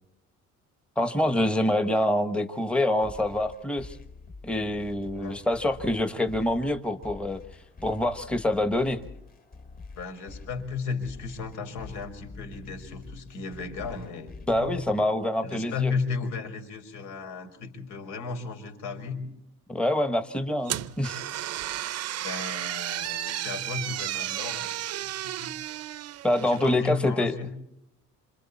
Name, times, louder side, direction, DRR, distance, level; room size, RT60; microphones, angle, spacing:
voice 1, 1.0-4.0 4.4-7.4 7.8-9.0 14.5-15.9 19.7-21.2 26.2-27.5, left 1 dB, 5° left, 8 dB, 1.1 m, -26 dB
sound 1, 3.0-15.0, left 4 dB, 30° left, 2.1 m, -46 dB
voice 2, 10.0-14.8 15.4-19.2 22.2-25.5 26.4-27.5, left 5 dB, 80° left, 6 dB, 5.1 m, -35 dB
sound 2, 20.7-26.8, right 13 dB, 55° right, 0.7 m, -33 dB
27.5 x 27.0 x 4.2 m, 0.81 s
cardioid pair, 165°, 30 cm